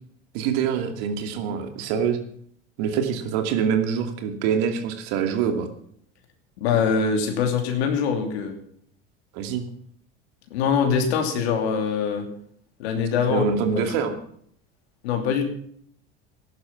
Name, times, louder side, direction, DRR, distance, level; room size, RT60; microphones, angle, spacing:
voice 1, 0.3-2.2 2.8-5.7 9.3-9.6 13.3-14.2, right 7 dB, 70° right, 6 dB, 2.6 m, -25 dB
voice 2, 6.6-8.6 10.5-12.3 12.8-13.5 15.0-15.5, left 6 dB, 75° left, 4 dB, 2.9 m, -23 dB
14.5 x 11.5 x 6.0 m, 0.63 s
hypercardioid pair, 80°, 32 cm